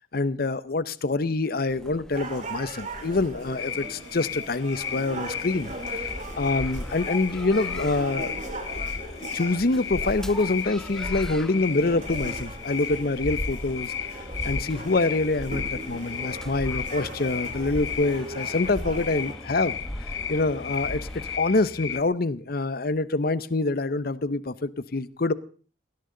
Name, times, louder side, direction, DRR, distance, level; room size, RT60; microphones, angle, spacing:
voice 1, 0.1-13.9 14.4-19.8 20.3-25.3, left 3 dB, 55° left, 17 dB, 0.8 m, -26 dB
sound 1, 1.7-21.4, equal, 5° left, 0.8 m, -39 dB
sound 2, 2.1-19.3, right 2 dB, 40° right, 4.0 m, -40 dB
sound 3, 3.6-22.0, left 8 dB, 80° left, 0.9 m, -35 dB
19.5 x 17.5 x 3.9 m, 0.40 s
head